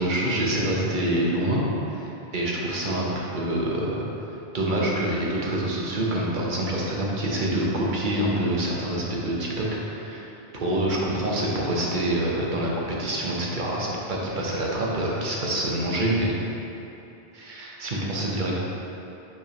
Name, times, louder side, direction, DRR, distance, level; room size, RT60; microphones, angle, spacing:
voice 1, 0.0-4.0 4.5-16.4 17.3-18.5, right 1 dB, 50° right, -3 dB, 1.0 m, -26 dB
5.3 x 3.6 x 5.0 m, 3.0 s
omnidirectional pair, 1.1 m